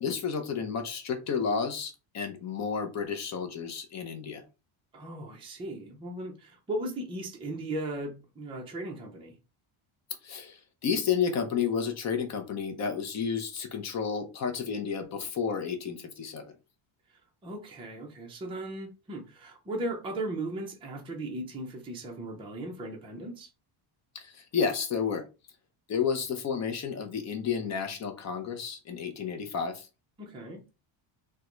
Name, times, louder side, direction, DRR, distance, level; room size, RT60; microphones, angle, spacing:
voice 1, 0.0-4.4 10.2-16.4 24.1-25.2 25.9-29.9, left 6 dB, 35° left, 0.6 m, -31 dB
voice 2, 4.9-9.3 17.4-23.5 30.2-30.6, right 1 dB, 10° right, 0.5 m, -37 dB
3.6 x 2.2 x 2.9 m
cardioid pair, 175°, 48 cm